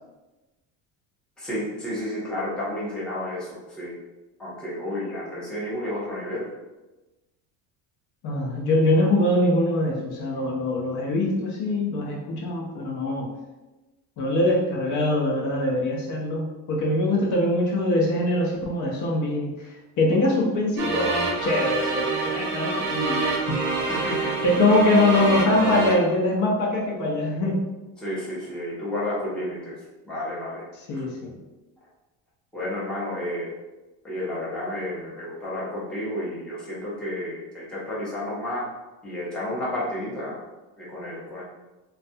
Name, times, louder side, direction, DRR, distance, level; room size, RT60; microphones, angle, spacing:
voice 1, 1.4-4.0 4.4-6.5 23.9-24.5 28.0-31.1 32.5-33.5 34.0-38.7 39.0-40.4 40.8-41.4, left 1 dB, ahead, -8 dB, 0.6 m, -31 dB
voice 2, 8.2-13.3 14.2-23.6 24.4-27.7 30.8-31.4, left 1 dB, 50° left, -2 dB, 0.6 m, -23 dB
sound 1, 20.8-25.9, right 3 dB, 60° right, 0.7 m, -26 dB
2.3 x 2.1 x 2.6 m, 1.1 s
cardioid pair, 140°, 39 cm